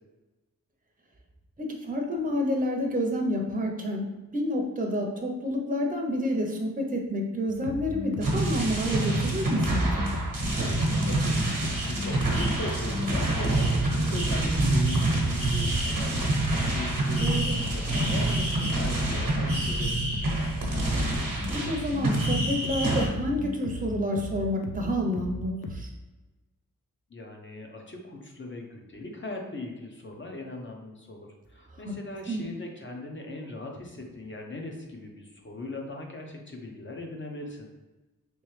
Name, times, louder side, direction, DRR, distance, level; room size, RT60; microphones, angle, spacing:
voice 1, 1.6-10.1 17.2-17.6 21.5-25.9 31.8-32.0 32.3-32.5, equal, 25° right, 1 dB, 0.6 m, -29 dB
sound 1, 7.5-25.8, left 2 dB, 85° left, 0.5 m, -36 dB
sound 2, 8.2-23.1, right 2 dB, 85° right, 0.9 m, -27 dB
voice 2, 11.0-11.4 11.9-16.2 16.4-20.0 27.1-37.7, left 2 dB, 35° left, 1 dB, 0.7 m, -39 dB
3.2 x 3.1 x 3.1 m, 1.1 s
wide cardioid pair, 75°, 33 cm